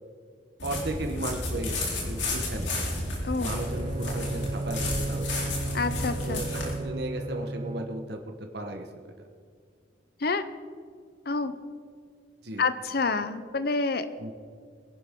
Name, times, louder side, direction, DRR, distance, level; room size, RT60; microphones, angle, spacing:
sound 1, 0.6-6.7, left 2 dB, 80° left, 3.6 m, -32 dB
voice 1, 0.6-1.8 2.1-2.7 3.4-5.4 6.2-8.2 8.5-8.8 12.4-12.6 14.2-14.3, right 1 dB, 60° right, 3 dB, 1.4 m, -35 dB
Bowed string instrument, 3.4-8.2, right 2 dB, 30° right, 0.6 m, -35 dB
voice 2, 5.7-6.4 10.2-10.4 11.3-11.5 12.6-14.1, left 4 dB, 55° left, 12 dB, 0.8 m, -28 dB
22.0 x 11.0 x 3.8 m, 2.1 s
head